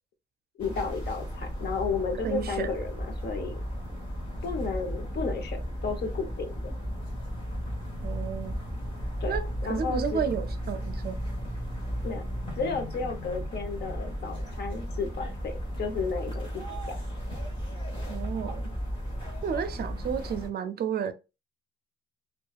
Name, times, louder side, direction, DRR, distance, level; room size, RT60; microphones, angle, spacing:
voice 1, 0.6-3.6 4.4-6.7 9.2-9.3 9.6-10.3 12.0-12.2 12.5-16.6, left 4 dB, 55° left, 0.7 m, -33 dB
sound 1, 0.6-20.5, equal, 25° left, 1.2 m, -35 dB
voice 2, 2.2-2.8 8.0-8.6 9.3-11.2 18.1-18.6 19.4-21.1, right 7 dB, 50° right, 0.4 m, -32 dB
2.7 x 2.3 x 2.3 m
cardioid pair, 90°, 20 cm